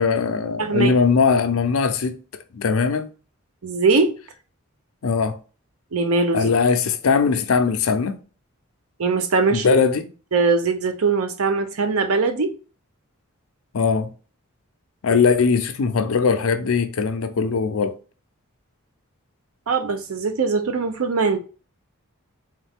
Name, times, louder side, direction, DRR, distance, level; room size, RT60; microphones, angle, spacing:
voice 1, 0.0-2.2 2.5-3.1 5.0-5.4 6.3-8.2 9.5-10.1 13.7-14.1 15.0-18.0, left 5 dB, 75° left, 0.5 m, -20 dB
voice 2, 0.6-0.9 3.6-4.1 5.9-6.5 9.0-9.8 10.3-12.5 15.1-15.2 19.7-21.4, right 4 dB, 85° right, 0.6 m, -21 dB
3.7 x 3.2 x 3.4 m
head